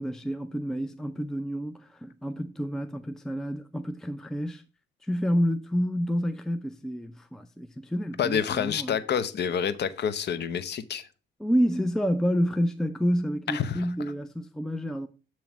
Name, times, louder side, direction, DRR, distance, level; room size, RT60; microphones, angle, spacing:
voice 1, 0.0-4.6 5.0-9.0 11.4-15.1, equal, 5° left, 0.5 m, -29 dB
voice 2, 8.2-11.1 13.5-13.9, left 7 dB, 60° left, 0.8 m, -28 dB
8.8 x 3.1 x 6.0 m
cardioid pair, 90°, 20 cm